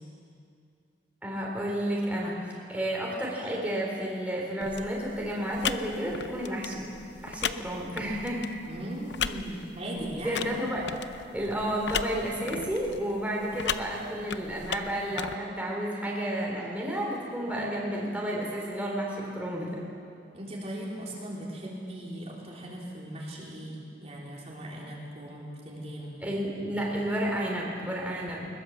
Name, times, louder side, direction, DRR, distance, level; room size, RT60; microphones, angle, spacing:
voice 1, 1.2-2.4 2.7-6.9 7.2-8.4 10.2-10.9 11.3-19.8 26.2-28.5, equal, 10° right, -3 dB, 3.7 m, -31 dB
sound 1, 4.6-15.4, left 7 dB, 65° left, 0.7 m, -37 dB
voice 2, 8.7-10.5 20.3-26.2, right 1 dB, 35° right, -4 dB, 3.6 m, -38 dB
21.0 x 20.5 x 7.5 m, 2.4 s
head